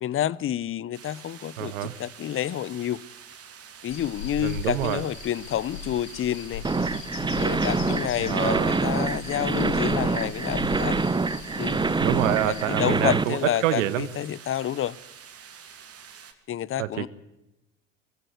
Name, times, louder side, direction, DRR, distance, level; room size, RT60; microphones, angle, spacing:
voice 1, 0.0-3.0 3.8-6.6 7.4-11.0 11.6-11.8 12.4-15.0 16.5-17.1, left 11 dB, 35° left, 0.8 m, -29 dB
sound 1, 0.9-16.3, right 7 dB, 35° right, 3.1 m, -47 dB
voice 2, 1.6-2.0 4.4-5.0 8.0-8.8 12.0-14.1 16.8-17.1, right 13 dB, 70° right, 1.6 m, -27 dB
sound 2, 3.9-12.6, left 5 dB, 75° left, 2.8 m, -38 dB
sound 3, 6.6-13.2, right 3 dB, 10° right, 0.9 m, -26 dB
23.5 x 15.5 x 8.2 m
hypercardioid pair, 70°, 39 cm